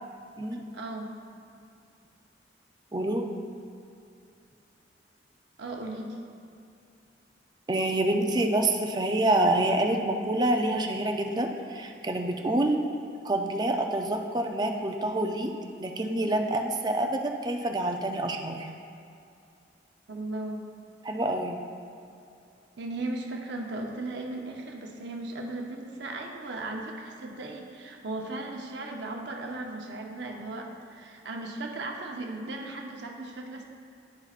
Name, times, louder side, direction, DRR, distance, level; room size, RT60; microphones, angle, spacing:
voice 1, 0.7-1.1 5.6-6.2 20.1-20.6 22.8-33.6, right 2 dB, 65° right, 1 dB, 0.7 m, -36 dB
voice 2, 2.9-3.3 7.7-12.8 13.2-15.5 15.8-18.7 21.0-21.6, right 1 dB, 20° right, 3 dB, 0.4 m, -27 dB
10.5 x 5.6 x 2.4 m, 2.5 s
head